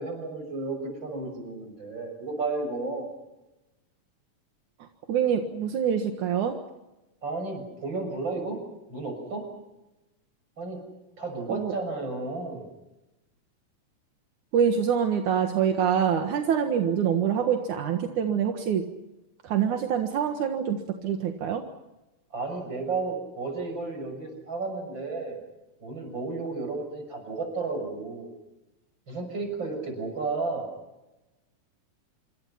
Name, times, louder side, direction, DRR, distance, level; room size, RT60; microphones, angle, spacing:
voice 1, 0.0-3.1 7.2-8.6 8.9-9.5 10.6-10.8 11.2-12.7 22.3-25.4 25.8-28.3 29.1-30.7, right 3 dB, 35° right, 5 dB, 7.2 m, -32 dB
voice 2, 4.8-6.6 11.5-11.7 14.5-18.8 19.4-21.6, right 8 dB, 80° right, 5 dB, 3.1 m, -25 dB
27.0 x 24.5 x 5.8 m, 1.0 s
omnidirectional pair, 3.4 m